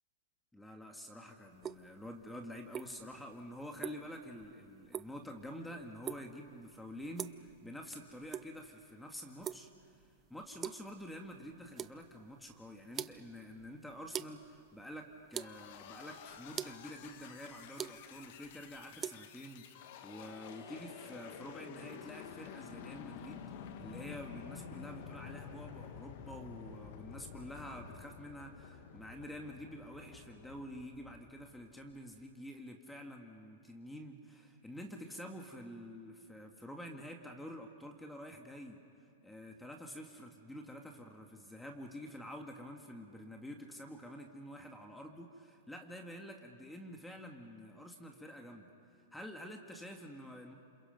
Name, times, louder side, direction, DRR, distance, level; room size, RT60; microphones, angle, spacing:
voice 1, 0.5-10.0 10.3-38.8 39.2-48.7 49.1-50.5, equal, 5° left, 3 dB, 2.0 m, -48 dB
sound 1, 1.5-19.1, right 9 dB, 25° right, 0.6 m, -46 dB
sound 2, 15.4-32.0, left 7 dB, 55° left, 1.8 m, -50 dB
28.5 x 27.5 x 5.3 m, 2.3 s
hypercardioid pair, 110°, 0 cm